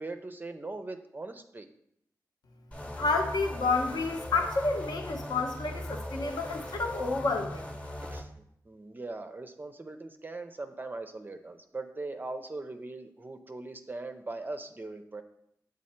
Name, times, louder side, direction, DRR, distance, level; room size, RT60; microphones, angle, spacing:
voice 1, 0.0-1.7 8.0-8.3 8.7-15.2, right 2 dB, 25° right, 7 dB, 0.4 m, -40 dB
sound 1, 2.7-8.2, left 1 dB, 15° left, 0.9 m, -39 dB
voice 2, 3.0-7.7, left 3 dB, 70° left, 4 dB, 0.9 m, -30 dB
6.4 x 3.7 x 4.3 m, 0.74 s
cardioid pair, 75°, 7 cm